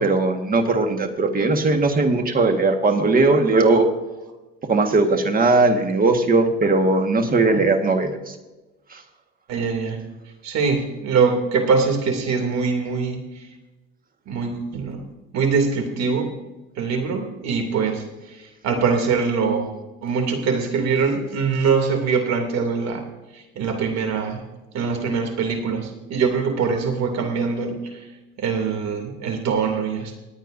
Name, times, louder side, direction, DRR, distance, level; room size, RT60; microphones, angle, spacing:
voice 1, 0.0-3.9 4.7-8.3 8.9-9.0, right 3 dB, 30° right, 6 dB, 1.6 m, -19 dB
voice 2, 9.5-10.0 10.4-13.5 14.3-15.0 15.3-16.3 16.8-23.0 23.3-24.4 24.7-28.1 28.4-30.1, right 5 dB, 60° right, 5 dB, 2.7 m, -23 dB
26.5 x 9.0 x 2.6 m, 1.1 s
supercardioid pair, 105°, 30 cm